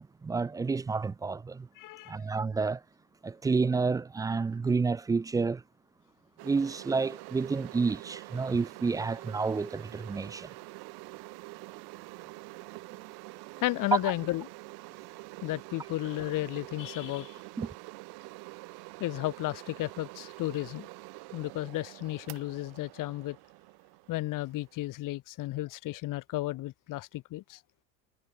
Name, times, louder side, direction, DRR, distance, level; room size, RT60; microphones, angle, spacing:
voice 1, 0.0-1.7 2.1-2.8 3.2-5.6 6.4-10.5 13.9-14.1 17.6-17.7, right 4 dB, 5° right, 0.5 m, -29 dB
voice 2, 1.8-2.2 13.6-14.5 15.4-17.4 19.0-20.9 21.3-23.4 24.1-27.6, left 17 dB, 40° left, 2.6 m, -33 dB
sound 1, 6.4-24.8, right 29 dB, 50° right, 4.7 m, -46 dB
figure-of-eight pair, 75°, 49 cm